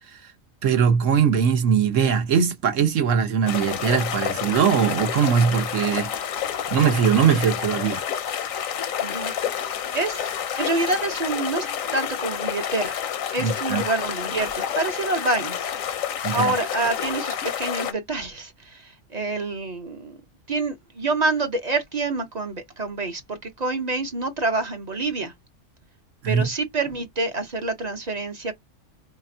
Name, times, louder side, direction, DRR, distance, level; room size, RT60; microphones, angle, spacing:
voice 1, 0.6-6.1 6.7-8.0 13.4-13.8 16.2-16.5 26.2-26.5, right 7 dB, 70° right, 1.2 m, -21 dB
sound 1, 3.5-17.9, left 9 dB, 80° left, 1.1 m, -29 dB
voice 2, 9.0-9.3 9.9-10.3 10.6-13.0 13.3-15.6 16.3-20.2 20.5-25.3 26.2-28.5, right 3 dB, 35° right, 0.8 m, -27 dB
5.1 x 2.2 x 2.7 m
omnidirectional pair, 1.4 m